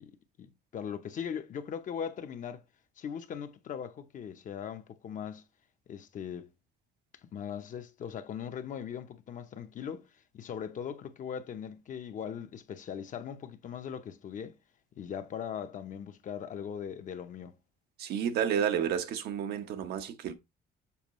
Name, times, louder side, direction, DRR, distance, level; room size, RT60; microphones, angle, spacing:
voice 1, 0.0-2.6 3.0-5.4 5.9-6.5 7.2-10.0 10.3-14.6 15.0-17.5, left 8 dB, 50° left, 0.8 m, -39 dB
voice 2, 18.0-20.3, right 8 dB, 70° right, 0.9 m, -31 dB
7.1 x 4.6 x 3.1 m
cardioid pair, 110°, 17 cm